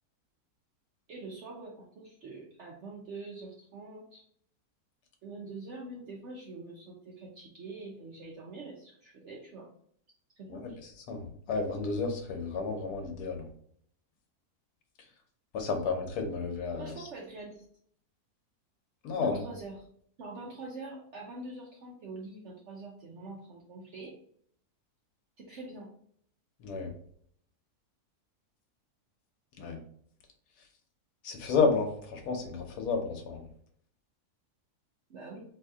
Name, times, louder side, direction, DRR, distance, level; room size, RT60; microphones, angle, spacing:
voice 1, 1.1-4.2 5.2-9.7 10.4-10.8 16.8-17.6 19.1-19.9 20.2-24.2 25.4-25.9 35.1-35.4, right 3 dB, 60° right, -2 dB, 0.8 m, -44 dB
voice 2, 11.1-13.5 15.5-17.1 19.0-19.4 26.6-26.9 29.6-29.8 31.2-33.5, left 4 dB, 85° left, 4 dB, 1.3 m, -31 dB
3.0 x 2.8 x 3.5 m, 0.64 s
omnidirectional pair, 1.6 m